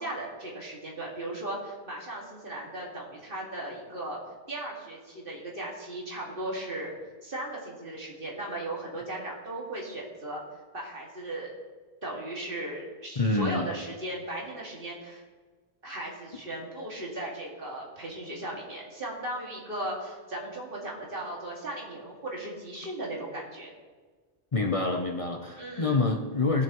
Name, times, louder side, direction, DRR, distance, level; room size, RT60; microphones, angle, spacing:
voice 1, 0.0-4.2 4.5-10.4 10.7-11.5 12.0-15.2 15.8-23.7 25.6-26.0, right 1 dB, 60° right, -3 dB, 2.3 m, -37 dB
voice 2, 13.2-13.7 24.5-26.6, left 3 dB, 35° left, 2 dB, 0.7 m, -27 dB
18.0 x 7.0 x 3.0 m, 1.4 s
omnidirectional pair, 1.0 m